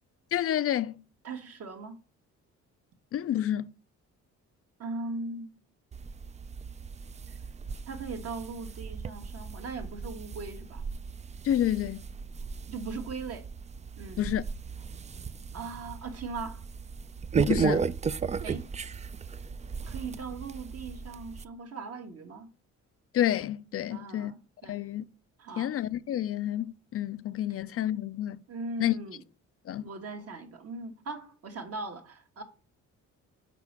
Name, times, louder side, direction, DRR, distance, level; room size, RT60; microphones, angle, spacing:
voice 1, 0.3-1.0 3.1-3.7 11.4-12.0 14.2-14.4 17.4-17.9 23.1-24.3 24.7-25.0 25.6-28.4 28.8-29.0 29.7-29.8, left 11 dB, 50° left, 0.4 m, -29 dB
voice 2, 1.2-2.0 4.8-5.6 7.9-10.8 12.7-13.4 14.0-14.3 15.5-16.6 18.4-18.7 19.8-22.5 23.9-24.8 25.4-25.7 28.5-29.2 29.8-32.4, right 3 dB, 55° right, 1.4 m, -39 dB
sound 1, 5.9-21.5, right 6 dB, 25° right, 0.3 m, -35 dB
5.9 x 4.3 x 5.9 m
cardioid pair, 90°, 30 cm